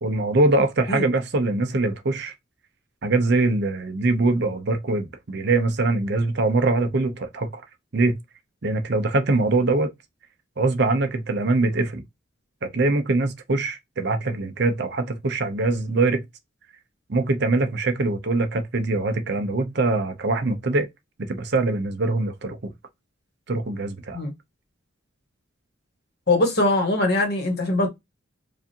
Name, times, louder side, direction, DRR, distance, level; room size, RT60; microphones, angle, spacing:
voice 1, 0.0-2.3 3.0-7.6 7.9-8.2 8.6-9.9 10.6-12.0 12.6-16.2 17.1-20.9 21.3-22.7 23.5-24.2, right 2 dB, 55° right, 0.6 m, -23 dB
voice 2, 26.3-27.9, left 2 dB, 50° left, 1.4 m, -21 dB
4.8 x 2.6 x 2.8 m
head